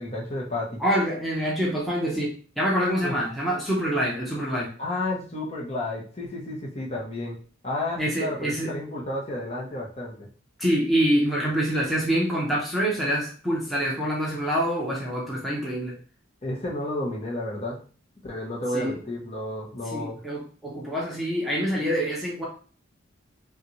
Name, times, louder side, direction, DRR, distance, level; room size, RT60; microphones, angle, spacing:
voice 1, 0.0-0.8 3.0-3.2 4.8-7.4 7.6-10.3 16.4-17.8 18.2-20.2, left 1 dB, 35° left, -3 dB, 1.0 m, -31 dB
voice 2, 0.8-4.7 8.0-8.7 10.6-15.9 18.7-19.0 19.9-22.5, equal, ahead, -5 dB, 0.9 m, -26 dB
5.5 x 2.4 x 3.1 m, 0.40 s
head